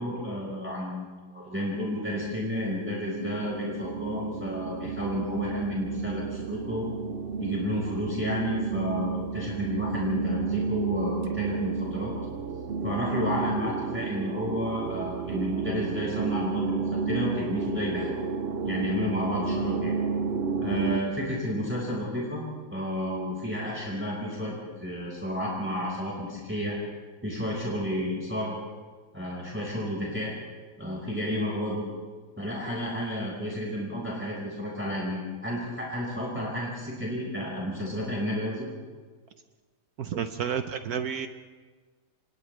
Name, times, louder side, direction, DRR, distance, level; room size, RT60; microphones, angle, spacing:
voice 1, 0.0-6.9 7.4-12.1 12.8-18.1 18.6-20.0 20.6-22.4 22.7-26.7 27.2-28.6 29.1-30.3 30.8-31.9 32.4-38.7, left 1 dB, 5° right, -4 dB, 4.7 m, -31 dB
sound 1, 2.1-21.0, right 5 dB, 50° right, 0.8 m, -31 dB
voice 2, 40.0-41.3, right 7 dB, 65° right, 8 dB, 1.3 m, -30 dB
30.0 x 27.5 x 3.3 m, 1.4 s
omnidirectional pair, 1.8 m